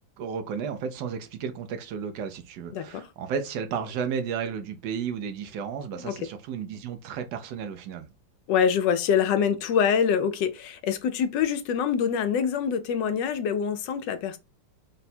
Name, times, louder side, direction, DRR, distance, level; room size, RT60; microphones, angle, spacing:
voice 1, 0.2-8.1, right 6 dB, 90° right, 1.3 m, -33 dB
voice 2, 2.7-3.0 6.0-6.1 8.5-14.4, left 7 dB, 90° left, 1.3 m, -25 dB
3.9 x 2.2 x 4.1 m
omnidirectional pair, 1.9 m